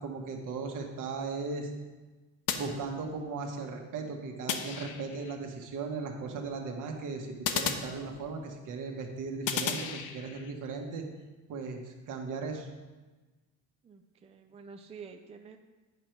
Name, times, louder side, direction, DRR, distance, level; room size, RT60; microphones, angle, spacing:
voice 1, 0.0-1.7 2.5-11.0 11.5-12.7, right 4 dB, 60° right, 2 dB, 1.4 m, -37 dB
sound 1, 2.5-3.4 4.5-5.4 7.4-8.6 9.5-10.5, left 7 dB, 60° left, 0.8 m, -35 dB
voice 2, 13.8-15.6, right 5 dB, 20° right, 5 dB, 0.4 m, -48 dB
9.1 x 5.1 x 4.5 m, 1.2 s
cardioid pair, 105°, 35 cm